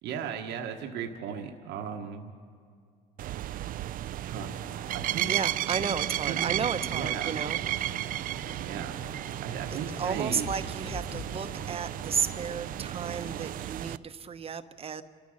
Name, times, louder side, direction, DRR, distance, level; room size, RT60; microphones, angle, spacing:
voice 1, 0.0-2.3 4.2-4.6 4.9-5.3 6.3-6.6 6.9-7.4 8.6-9.1 9.4-10.5, right 7 dB, 85° right, 3 dB, 1.2 m, -36 dB
sound 1, 3.2-14.0, right 13 dB, 55° right, 0.4 m, -33 dB
sound 2, 4.4-13.6, left 2 dB, 40° left, 4.0 m, -48 dB
sound 3, 4.5-13.7, left 3 dB, 70° left, 2.7 m, -51 dB
voice 2, 5.2-8.1 9.7-15.0, right 6 dB, 35° right, 10 dB, 0.9 m, -33 dB
29.5 x 13.5 x 6.4 m, 2.4 s
cardioid pair, 110°, 17 cm